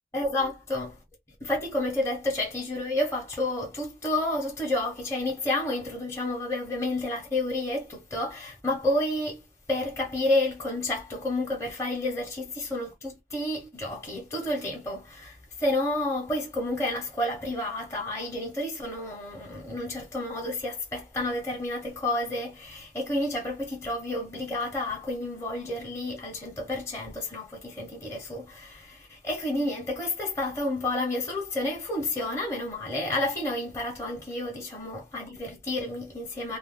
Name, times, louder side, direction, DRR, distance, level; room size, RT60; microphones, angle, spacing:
voice 1, 0.1-1.0 1.4-9.4 9.7-36.6, left 1 dB, 15° left, 0.8 m, -30 dB
2.4 x 2.2 x 3.5 m
head